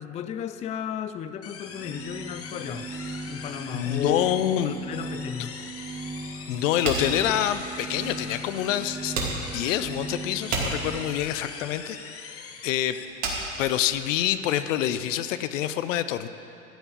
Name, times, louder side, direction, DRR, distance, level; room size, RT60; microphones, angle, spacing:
voice 1, 0.0-2.9 3.3-4.3 4.6-5.6, left 9 dB, 20° left, 11 dB, 0.3 m, -34 dB
sound 1, 1.4-13.0, left 6 dB, 35° left, 1.0 m, -42 dB
sound 2, 1.6-11.3, right 3 dB, 15° right, 0.7 m, -38 dB
voice 2, 3.7-4.7 6.5-9.2 9.5-12.3 12.6-13.0 13.6-16.3, left 11 dB, 75° left, 12 dB, 0.6 m, -26 dB
sound 3, 6.8-14.5, right 3 dB, 65° right, 2.6 m, -32 dB
13.5 x 4.6 x 8.6 m, 2.8 s
hypercardioid pair, 90°, 38 cm